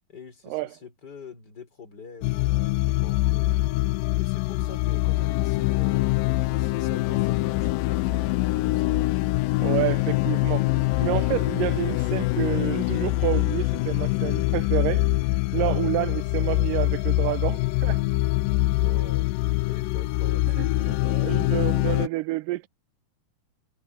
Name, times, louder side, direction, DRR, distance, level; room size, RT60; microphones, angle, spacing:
voice 1, 0.1-3.5 4.2-6.2 6.5-9.0 18.8-19.3 19.7-20.8, left 4 dB, 30° left, 4.6 m, -45 dB
sound 1, 2.2-22.1, left 18 dB, 85° left, 2.2 m, -24 dB
sound 2, 5.7-11.0, right 5 dB, 20° right, 3.6 m, -52 dB
voice 2, 9.6-10.7 11.0-15.0 15.5-18.0 20.6-22.7, right 18 dB, 80° right, 2.2 m, -29 dB
omnidirectional pair, 3.9 m